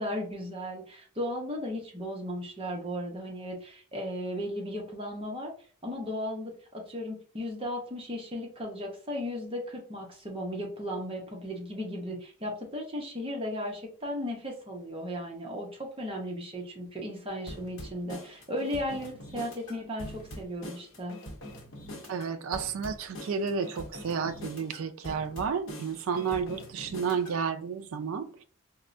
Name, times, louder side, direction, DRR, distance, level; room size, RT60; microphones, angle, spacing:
voice 1, 0.0-5.5 5.8-21.2, equal, 25° right, 0.7 m, -36 dB
sound 1, 17.5-27.4, equal, 60° left, 0.8 m, -44 dB
voice 2, 22.1-28.4, right 6 dB, 65° right, 0.3 m, -31 dB
4.3 x 2.1 x 2.5 m
head